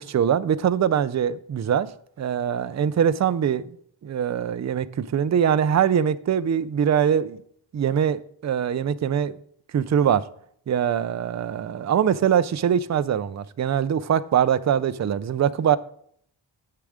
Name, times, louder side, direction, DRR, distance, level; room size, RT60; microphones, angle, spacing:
voice 1, 0.0-1.9 2.2-3.7 4.0-7.4 7.7-9.4 9.7-10.2 10.7-15.8, right 8 dB, 40° right, 0.5 m, -22 dB
6.9 x 6.8 x 4.9 m
cardioid pair, 65°, 46 cm